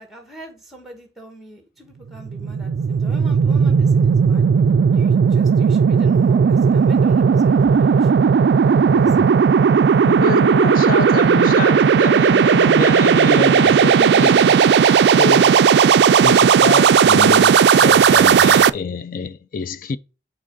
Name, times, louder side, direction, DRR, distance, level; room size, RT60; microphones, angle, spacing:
voice 1, 0.0-4.5 4.9-9.3, right 1 dB, ahead, 1.7 m, -41 dB
sound 1, 2.1-18.7, right 6 dB, 65° right, 0.3 m, -14 dB
voice 2, 8.9-9.3 10.0-15.6 16.2-20.0, left 4 dB, 50° left, 0.4 m, -26 dB
6.4 x 4.3 x 3.8 m
head